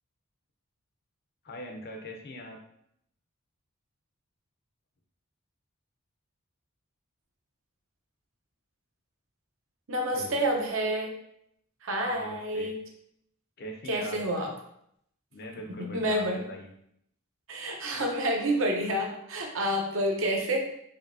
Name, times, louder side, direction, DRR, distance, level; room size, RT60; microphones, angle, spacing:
voice 1, 1.4-2.6 10.1-10.5 12.0-12.7 13.6-14.2 15.3-16.7, left 1 dB, 50° left, 2 dB, 0.6 m, -42 dB
voice 2, 9.9-11.1 11.8-12.8 13.9-14.5 15.8-16.5 17.5-20.6, right 1 dB, 65° right, 1 dB, 0.8 m, -28 dB
5.1 x 2.7 x 2.6 m, 0.73 s
head